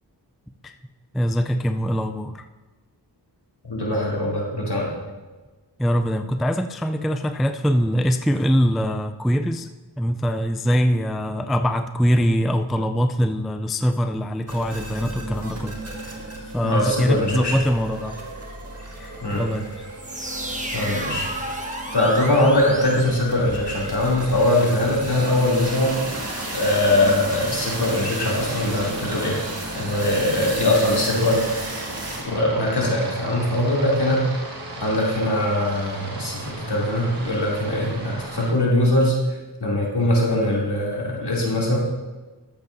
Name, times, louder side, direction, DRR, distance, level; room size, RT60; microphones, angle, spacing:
voice 1, 1.1-2.4 5.8-9.7 10.0-15.8 16.5-18.2 19.0-19.7, equal, ahead, 8 dB, 0.3 m, -23 dB
voice 2, 3.7-4.9 16.6-17.6 19.2-19.4 20.7-21.3 21.9-26.0 26.5-29.4 29.7-31.4 32.3-34.2 34.8-39.1 39.6-41.8, left 1 dB, 70° left, -4 dB, 2.8 m, -21 dB
sound 1, 14.5-32.2, right 1 dB, 35° right, 1.8 m, -34 dB
sound 2, 20.0-23.8, right 1 dB, 20° right, 1.2 m, -33 dB
Aircraft, 22.2-38.5, right 2 dB, 55° right, 1.5 m, -38 dB
13.5 x 8.1 x 2.6 m, 1.3 s
wide cardioid pair, 85°, 42 cm